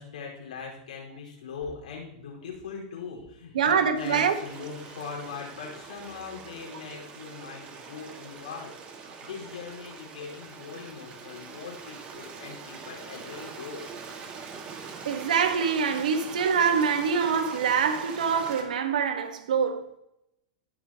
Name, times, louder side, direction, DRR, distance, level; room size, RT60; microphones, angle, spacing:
voice 1, 0.0-13.8, left 5 dB, 90° left, 4.7 m, -40 dB
voice 2, 3.5-4.4 15.0-19.8, right 6 dB, 85° right, 1.4 m, -25 dB
Stream, 3.9-18.6, right 5 dB, 30° right, 1.8 m, -43 dB
19.5 x 6.5 x 3.0 m
supercardioid pair, 135°, 4 cm